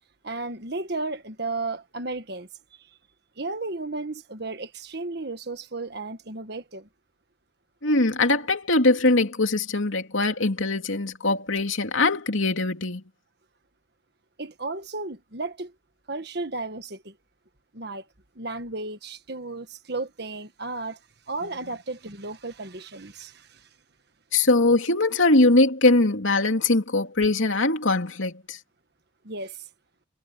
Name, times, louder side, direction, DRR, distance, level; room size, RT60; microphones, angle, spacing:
voice 1, 0.2-2.5 3.4-6.9 14.4-15.7 16.1-17.1 17.7-18.1 18.3-21.0 21.3-23.7 29.2-29.6, right 3 dB, 55° right, 1.6 m, -34 dB
voice 2, 7.8-13.0 24.3-28.6, left 2 dB, 80° left, 2.8 m, -21 dB
head